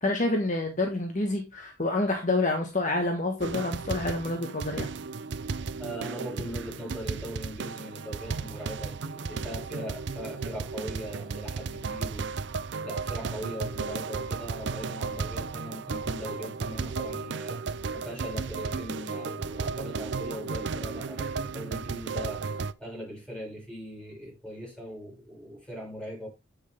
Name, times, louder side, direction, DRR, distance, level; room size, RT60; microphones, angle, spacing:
voice 1, 0.0-4.9, left 2 dB, 40° left, 1.3 m, -28 dB
sound 1, 3.4-22.7, right 4 dB, 65° right, 0.5 m, -34 dB
voice 2, 5.8-26.3, equal, 5° left, 6.0 m, -40 dB
10.5 x 6.4 x 3.4 m
head